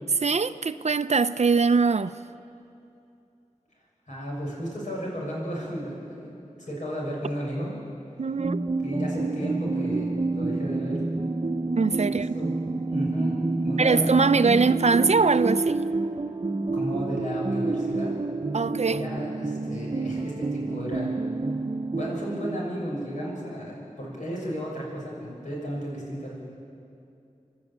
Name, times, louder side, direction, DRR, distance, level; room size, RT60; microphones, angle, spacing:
voice 1, 0.2-2.1 8.2-8.6 11.8-12.3 13.8-15.8 18.5-19.0, right 4 dB, 55° right, 0.6 m, -22 dB
voice 2, 4.1-6.3 6.6-7.7 8.8-11.0 12.1-12.5 12.8-14.3 16.7-18.1 18.9-21.1 21.9-26.3, equal, 65° left, 7.4 m, -33 dB
sound 1, 8.4-23.0, right 3 dB, 40° right, 0.9 m, -29 dB
26.0 x 12.0 x 8.8 m
wide cardioid pair, 50°, 13 cm